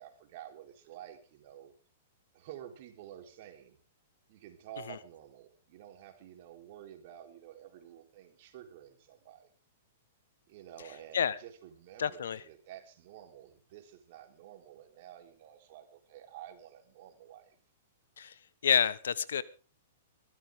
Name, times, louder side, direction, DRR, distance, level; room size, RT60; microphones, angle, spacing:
voice 1, 0.0-1.7 2.3-3.8 4.3-9.5 10.5-17.6, right 11 dB, 45° right, 3.8 m, -50 dB
voice 2, 12.0-12.4 18.2-19.4, left 8 dB, 85° left, 1.1 m, -29 dB
21.0 x 14.0 x 3.7 m
hypercardioid pair, 155°, 0 cm